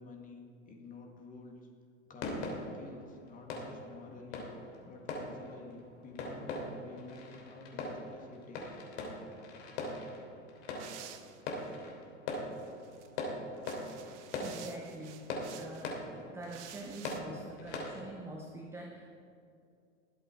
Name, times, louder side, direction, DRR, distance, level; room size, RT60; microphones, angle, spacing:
voice 1, 0.0-1.7 2.1-4.5 4.9-8.7 9.2-9.7, left 3 dB, 20° left, 1 dB, 1.9 m, -50 dB
sound 1, 2.2-18.2, left 2 dB, 50° left, 3.1 m, -42 dB
sound 2, 10.8-11.7 12.5-13.1 13.5-15.9 16.4-17.2, right 10 dB, 55° right, 1.2 m, -52 dB
voice 2, 13.9-19.1, right 2 dB, 5° right, 0 dB, 0.7 m, -46 dB
20.5 x 7.9 x 4.5 m, 2.4 s
hypercardioid pair, 135°, 42 cm